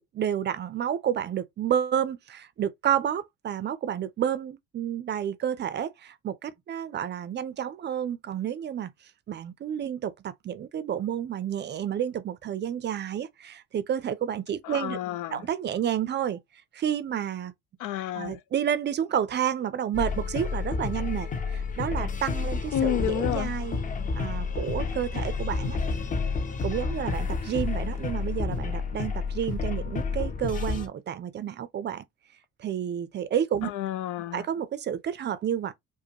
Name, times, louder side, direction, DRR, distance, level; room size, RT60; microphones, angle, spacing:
voice 1, 0.0-8.9 9.3-15.0 15.3-16.4 16.7-17.5 18.1-23.8 24.1-25.8 26.6-32.0 32.6-33.7 34.3-35.7, right 9 dB, 35° right, 0.4 m, -30 dB
voice 2, 14.6-15.4 17.8-18.4 22.7-23.5 33.6-34.4, left 12 dB, 85° left, 0.6 m, -30 dB
sound 1, 19.9-30.9, left 4 dB, 25° left, 0.7 m, -30 dB
5.0 x 2.1 x 2.8 m
cardioid pair, 135°, 30 cm